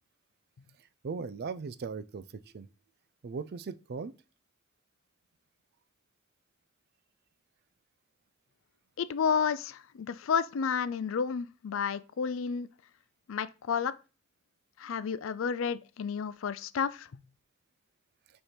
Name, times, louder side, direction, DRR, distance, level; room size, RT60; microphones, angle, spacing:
voice 1, 1.0-2.3 2.5-2.7 3.2-4.1, right 5 dB, 50° right, 0.4 m, -38 dB
voice 2, 9.0-12.7 13.3-13.9 14.8-17.1, left 6 dB, 65° left, 0.4 m, -31 dB
4.4 x 4.3 x 5.0 m
head